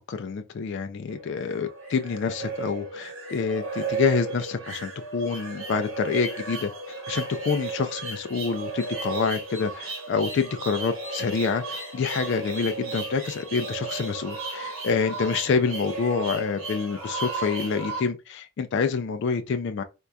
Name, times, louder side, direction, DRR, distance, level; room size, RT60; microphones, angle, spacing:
voice 1, 0.1-19.8, left 5 dB, 55° left, 0.3 m, -27 dB
sound 1, 1.1-18.0, right 3 dB, 70° right, 1.3 m, -34 dB
4.5 x 2.3 x 2.5 m
head